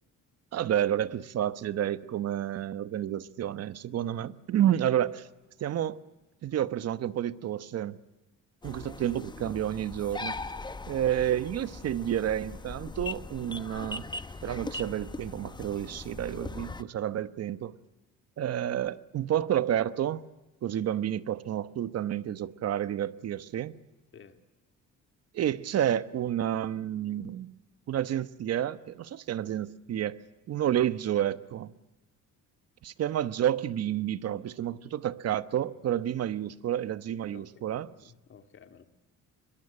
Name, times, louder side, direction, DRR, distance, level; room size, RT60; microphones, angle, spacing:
voice 1, 0.5-5.3 5.6-6.0 6.4-8.0 8.6-10.4 10.9-14.0 14.4-17.7 18.4-20.2 20.6-23.7 25.3-27.5 27.9-31.7 32.8-37.9, right 11 dB, 50° right, 1.1 m, -30 dB
sound 1, 8.6-16.8, left 3 dB, 15° left, 1.0 m, -40 dB
voice 2, 37.3-38.8, left 6 dB, 40° left, 2.2 m, -54 dB
24.0 x 22.5 x 10.0 m
cardioid pair, 150°, 32 cm